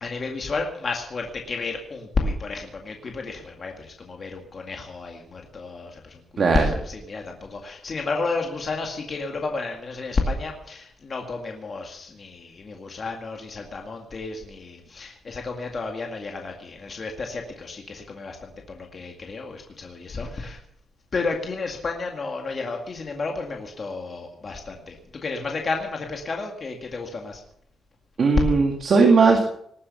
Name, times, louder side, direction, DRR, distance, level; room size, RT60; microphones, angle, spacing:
voice 1, 0.0-20.6 21.1-27.4, left 3 dB, 35° left, 2 dB, 2.1 m, -31 dB
voice 2, 6.4-6.7 28.2-29.4, right 4 dB, 40° right, 2 dB, 1.9 m, -17 dB
19.5 x 9.7 x 7.0 m, 0.69 s
wide cardioid pair, 180°, 0 cm